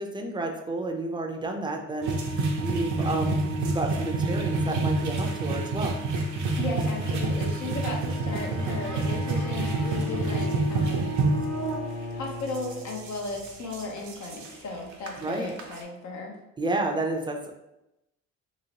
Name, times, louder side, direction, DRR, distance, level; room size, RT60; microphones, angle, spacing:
voice 1, 0.0-6.0 15.2-15.5 16.6-17.5, right 2 dB, 15° right, 2 dB, 0.5 m, -31 dB
sound 1, 2.0-11.8 12.5-14.5 15.1-15.2 15.3-15.8, right 2 dB, 70° right, 0.7 m, -28 dB
voice 2, 6.6-11.2 12.1-16.3, left 3 dB, 70° left, 0 dB, 0.8 m, -35 dB
Bowed string instrument, 8.2-13.4, left 3 dB, 90° left, 0.5 m, -37 dB
3.0 x 2.9 x 2.8 m, 0.91 s
cardioid pair, 90°, 30 cm